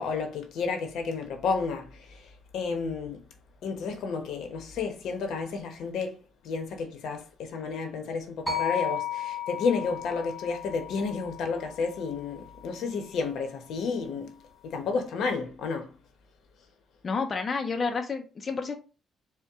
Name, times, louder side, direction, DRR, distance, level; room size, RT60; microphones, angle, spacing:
voice 1, 0.0-3.2 3.6-6.2 6.4-14.4 14.6-15.9, left 4 dB, 75° left, 0.9 m, -31 dB
sound 1, 8.5-12.7, left 8 dB, 10° right, 0.7 m, -35 dB
voice 2, 17.0-18.8, left 4 dB, 35° left, 0.5 m, -30 dB
4.5 x 2.2 x 3.5 m
cardioid pair, 120°, 0 cm